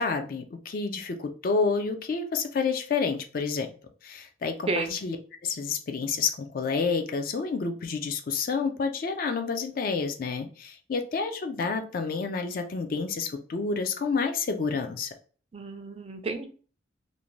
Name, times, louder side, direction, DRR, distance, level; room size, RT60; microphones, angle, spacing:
voice 1, 0.0-3.7 4.0-5.2 5.4-15.1, left 4 dB, 45° left, 7 dB, 0.4 m, -29 dB
voice 2, 15.5-16.4, right 3 dB, 30° right, 6 dB, 0.3 m, -31 dB
2.5 x 2.1 x 3.0 m, 0.39 s
head